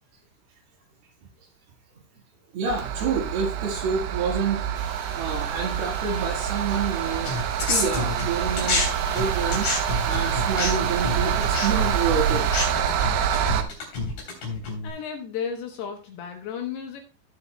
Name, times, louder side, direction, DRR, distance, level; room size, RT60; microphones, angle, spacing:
voice 1, 2.5-7.3 7.7-8.8 9.1-9.7 10.0-12.4, right 6 dB, 60° right, 1 dB, 3.3 m, -28 dB
sound 1, 2.7-13.6, right 8 dB, 80° right, 3.2 m, -26 dB
sound 2, 4.7-12.7, right 1 dB, 10° right, 2.5 m, -43 dB
sound 3, 7.3-8.9 9.1-14.9, left 3 dB, 55° left, 4.9 m, -29 dB
voice 2, 14.8-17.0, left 7 dB, 70° left, 4 dB, 2.7 m, -33 dB
17.5 x 7.1 x 2.2 m, 0.29 s
omnidirectional pair, 5.4 m